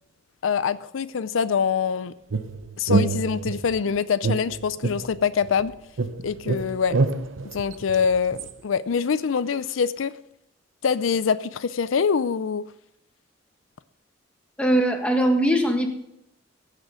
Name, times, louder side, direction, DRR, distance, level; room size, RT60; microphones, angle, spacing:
voice 1, 0.4-2.1 2.8-5.7 6.2-7.0 7.4-10.1 10.8-12.7, left 6 dB, 90° left, 15 dB, 0.5 m, -24 dB
sound 1, 2.3-3.8 4.2-5.7 6.0-8.5, right 3 dB, 80° right, 0.8 m, -26 dB
voice 2, 14.6-15.9, right 1 dB, 5° left, 3 dB, 1.5 m, -20 dB
15.5 x 6.5 x 5.1 m, 0.79 s
head